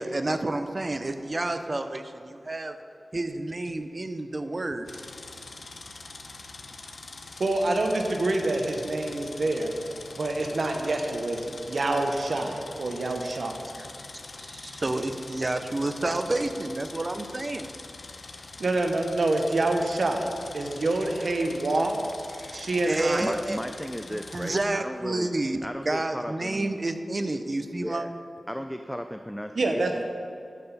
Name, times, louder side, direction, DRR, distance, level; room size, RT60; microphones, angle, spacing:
voice 1, 0.0-2.7 3.1-4.9 13.8-17.7 22.4-22.6 22.9-23.6 24.3-28.0, right 2 dB, 40° right, 8 dB, 0.7 m, -30 dB
sound 1, 4.9-24.6, left 3 dB, 70° left, 0.8 m, -44 dB
voice 2, 7.4-9.7 10.1-13.6 18.6-20.3 20.5-21.9 22.5-23.3 29.5-30.0, right 2 dB, 70° right, 3 dB, 1.0 m, -26 dB
voice 3, 23.2-25.3 25.6-26.8 27.7-28.1 28.5-30.0, equal, 5° left, 7 dB, 0.4 m, -35 dB
12.0 x 7.8 x 4.1 m, 2.6 s
wide cardioid pair, 75°, 0 cm